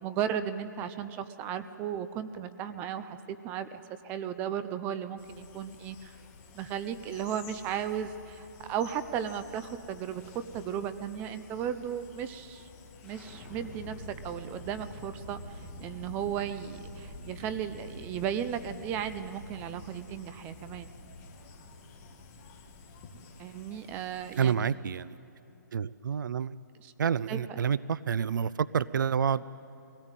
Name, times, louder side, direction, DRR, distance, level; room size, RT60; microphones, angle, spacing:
voice 1, 0.0-6.2 6.5-10.2 10.5-12.6 13.0-20.9 23.4-24.6 26.8-26.9 27.3-27.6, right 9 dB, 15° right, 12 dB, 0.6 m, -35 dB
sound 1, 5.2-24.5, left 5 dB, 25° left, 2.1 m, -53 dB
sound 2, 13.0-24.9, left 1 dB, 5° left, 3.2 m, -47 dB
voice 2, 24.4-25.2 25.7-26.6 27.0-29.4, right 7 dB, 75° right, 19 dB, 0.5 m, -28 dB
22.0 x 17.5 x 9.0 m, 2.8 s
hypercardioid pair, 160°, 10 cm